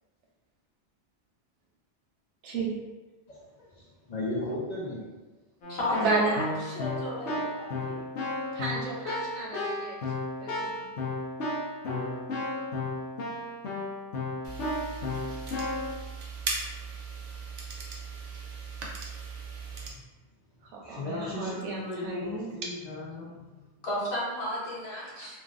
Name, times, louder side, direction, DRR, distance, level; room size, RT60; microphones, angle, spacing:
voice 1, 2.4-2.7 6.0-6.5 8.5-10.1 10.4-10.9 20.7-22.5 25.0-25.4, right 3 dB, 90° right, -2 dB, 1.0 m, -33 dB
voice 2, 3.8-5.0 19.9-20.0 20.8-23.7, left 2 dB, 50° left, -5 dB, 0.5 m, -36 dB
Keyboard (musical), 5.6-15.9, left 2 dB, 90° left, 1.1 m, -33 dB
voice 3, 5.7-8.0 23.8-25.4, left 1 dB, 65° left, -6 dB, 1.1 m, -34 dB
sound 1, 14.4-19.9, right 4 dB, 55° right, 0.5 m, -38 dB
3.2 x 2.4 x 2.4 m, 1.2 s
omnidirectional pair, 1.2 m